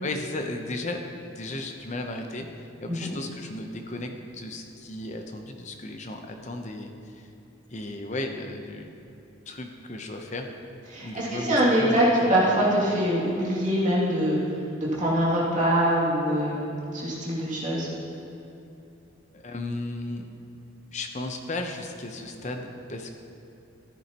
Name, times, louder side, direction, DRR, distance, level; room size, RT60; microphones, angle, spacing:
voice 1, 0.0-7.3 7.7-8.9 9.5-10.5 11.0-12.3 19.3-20.3 20.9-23.1, left 2 dB, 35° left, 4 dB, 0.8 m, -35 dB
voice 2, 10.9-14.4 14.8-16.6 16.9-17.9, equal, 35° right, -6 dB, 2.5 m, -23 dB
14.5 x 9.8 x 3.0 m, 2.8 s
head